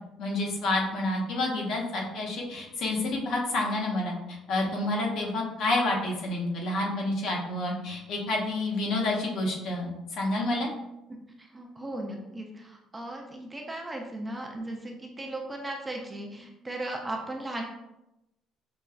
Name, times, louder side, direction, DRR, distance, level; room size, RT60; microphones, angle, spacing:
voice 1, 0.2-10.7, left 2 dB, 60° left, -1 dB, 0.8 m, -29 dB
voice 2, 11.4-17.6, right 1 dB, 15° right, 1 dB, 0.4 m, -37 dB
5.0 x 2.2 x 2.3 m, 0.91 s
cardioid pair, 155°, 0 cm